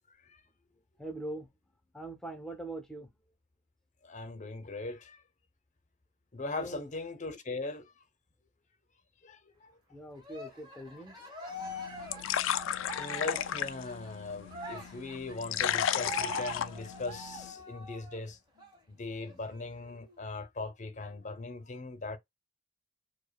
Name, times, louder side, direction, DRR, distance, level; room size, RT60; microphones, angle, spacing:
voice 1, 1.0-1.5 1.9-3.1 6.6-6.8 9.9-11.2, right 2 dB, ahead, 0.8 m, -42 dB
voice 2, 4.0-5.2 6.3-7.9 9.2-9.7 12.0-12.2 12.6-18.4 18.9-22.2, left 3 dB, 35° left, 0.7 m, -40 dB
Cheering, 10.2-18.2 18.6-18.8 19.1-20.1, right 1 dB, 20° right, 1.4 m, -44 dB
sound 1, 11.6-17.5, left 10 dB, 60° left, 0.3 m, -34 dB
4.9 x 2.2 x 2.3 m
head